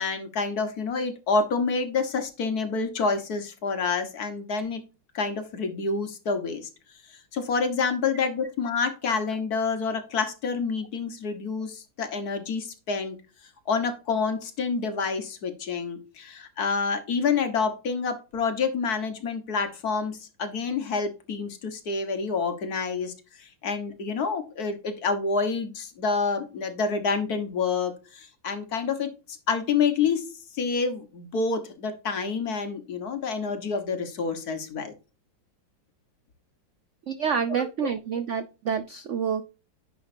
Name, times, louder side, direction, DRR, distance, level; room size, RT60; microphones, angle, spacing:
voice 1, 0.0-4.8 5.1-6.7 7.3-13.2 13.7-29.1 29.5-34.9 37.5-37.7, left 5 dB, 55° left, 1.7 m, -28 dB
voice 2, 37.1-39.4, right 7 dB, 75° right, 0.6 m, -28 dB
10.0 x 5.9 x 2.7 m
omnidirectional pair, 2.1 m